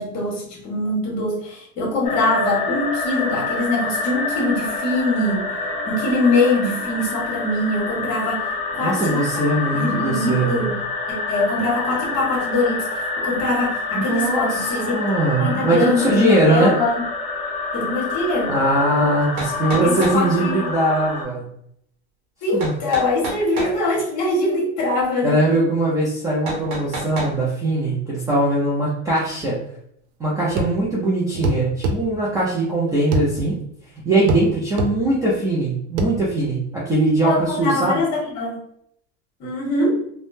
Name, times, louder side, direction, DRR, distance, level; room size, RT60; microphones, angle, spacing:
voice 1, 0.0-5.5 5.9-9.2 9.7-10.8 11.1-15.0 15.4-17.0 17.7-18.5 19.7-20.7 22.4-25.6 37.2-38.6 39.4-40.0, left 2 dB, 45° left, -3 dB, 1.4 m, -23 dB
sound 1, 2.0-21.2, left 3 dB, 20° left, 0.7 m, -27 dB
voice 2, 8.8-10.6 13.9-16.7 18.5-21.4 22.5-22.7 25.2-29.6 30.2-33.6 34.0-38.0, right 1 dB, 10° right, -7 dB, 0.3 m, -20 dB
sound 2, 19.4-20.2 22.6-23.8 26.5-27.4, right 2 dB, 55° right, 0.9 m, -29 dB
sound 3, 30.6-30.8 31.4-32.0 33.1-33.3 34.3-34.5 34.8-34.9 36.0-36.1, right 2 dB, 75° right, 0.6 m, -22 dB
3.4 x 2.0 x 2.6 m, 0.70 s
supercardioid pair, 150°, 36 cm